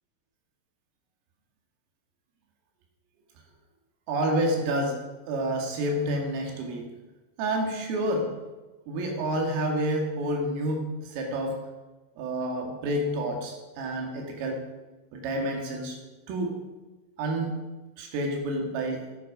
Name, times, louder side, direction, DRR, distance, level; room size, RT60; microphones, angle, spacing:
voice 1, 4.1-5.0 5.3-6.9 7.4-8.3 8.9-11.6 12.2-14.6 15.1-16.0 16.3-16.6 17.2-17.5 18.0-19.0, right 1 dB, 75° right, 1 dB, 4.8 m, -29 dB
13.0 x 12.0 x 5.0 m, 1.2 s
omnidirectional pair, 6.0 m